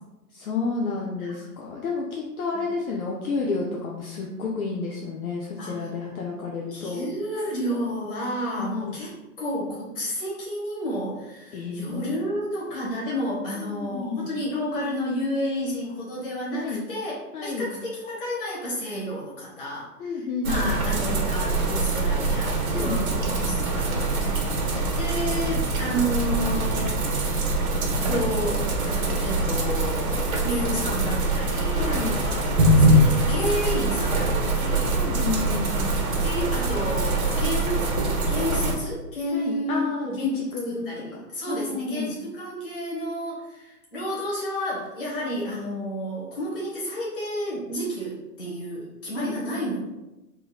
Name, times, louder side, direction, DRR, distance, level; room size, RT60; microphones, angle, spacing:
voice 1, 0.3-7.0 8.6-9.0 11.5-12.2 13.6-14.3 16.5-16.8 17.3-17.7 20.0-21.0 22.7-23.4 31.7-32.2 34.9-36.0 39.3-40.9 41.5-42.1 49.2-49.3, left 4 dB, 60° left, -2 dB, 0.6 m, -31 dB
voice 2, 1.2-1.5 2.5-2.6 5.6-5.9 6.7-17.1 17.4-27.0 28.0-34.9 36.2-37.9 38.3-40.3 40.7-49.9, equal, 35° left, -5 dB, 1.1 m, -31 dB
sound 1, 20.4-38.7, right 2 dB, 60° right, 1.0 m, -24 dB
3.7 x 2.7 x 2.3 m, 1.0 s
hypercardioid pair, 170°, 49 cm